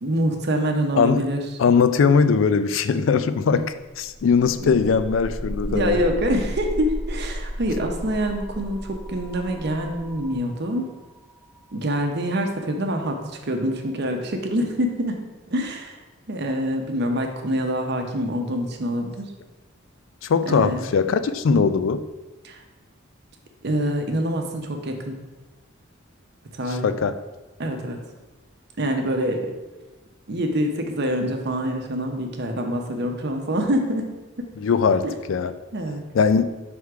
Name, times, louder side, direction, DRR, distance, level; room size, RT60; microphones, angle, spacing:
voice 1, 0.0-1.4 4.6-4.8 5.7-10.9 11.7-13.2 13.5-15.2 15.5-16.0 16.3-19.3 20.4-20.9 22.4-22.6 23.6-25.2 26.5-26.8 27.6-28.0 28.8-29.5 30.3-34.1 34.4-34.5 35.0-35.2 35.7-36.0, equal, 55° right, 4 dB, 0.8 m, -25 dB
voice 2, 1.0-1.3 1.6-6.0 20.2-22.0 26.7-27.2 34.6-35.6 36.1-36.5, left 5 dB, 65° left, 12 dB, 0.4 m, -20 dB
sound 1, 4.1-13.7, equal, 25° right, 0.4 m, -35 dB
6.3 x 3.5 x 4.6 m, 1.1 s
head